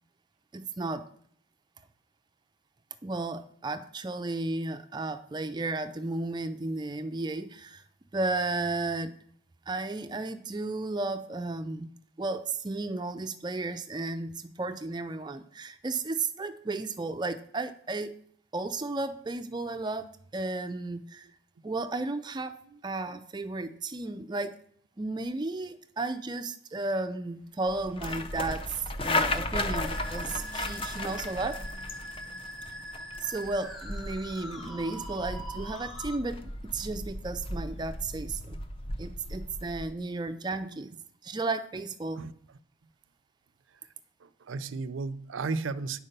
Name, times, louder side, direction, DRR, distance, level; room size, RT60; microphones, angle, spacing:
voice 1, 0.5-1.1 3.0-7.8 8.1-9.2 9.7-18.2 18.5-21.3 21.6-22.6 22.8-24.6 25.0-31.6 32.7-32.8 33.2-38.6 39.0-40.9 41.2-42.2, right 3 dB, 20° right, 0.4 m, -34 dB
Motorcycle, 27.3-35.5, left 1 dB, 70° left, 3.4 m, -55 dB
sound 1, 27.7-39.9, left 2 dB, 25° left, 0.6 m, -35 dB
Musical instrument, 29.8-36.2, equal, ahead, 1.2 m, -43 dB
voice 2, 44.2-46.0, right 4 dB, 80° right, 0.5 m, -34 dB
9.9 x 4.7 x 6.6 m
head